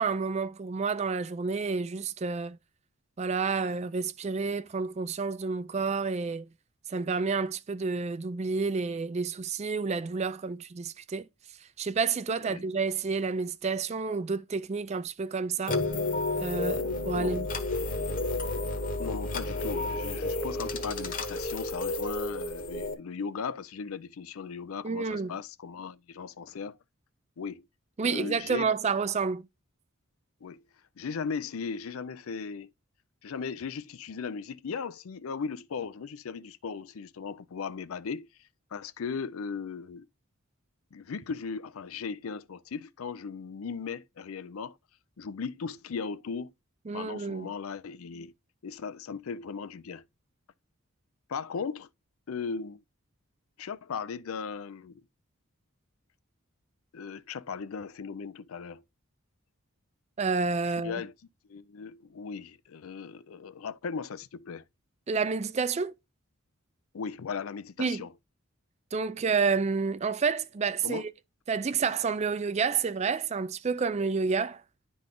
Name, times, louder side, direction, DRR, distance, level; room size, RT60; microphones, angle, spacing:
voice 1, 0.0-2.6 3.2-6.5 6.9-11.3 11.8-15.8 16.4-17.5 24.8-25.4 28.0-29.5 46.9-47.5 60.2-61.0 65.1-65.9 67.8-68.0 68.9-71.1 71.5-74.6, right 5 dB, 30° right, 0.4 m, -29 dB
sound 1, 15.7-22.9, left 2 dB, 40° left, 1.2 m, -31 dB
voice 2, 18.7-26.8 27.4-27.6 28.0-28.7 30.4-30.6 31.0-32.7 33.2-38.3 38.7-40.1 40.9-44.8 45.2-46.5 46.9-48.3 48.6-50.0 51.3-51.9 52.3-52.8 53.6-55.0 56.9-58.8 60.7-61.1 61.5-64.6 66.9-68.1 70.8-71.1, left 5 dB, 75° left, 0.5 m, -37 dB
10.5 x 3.9 x 3.7 m
head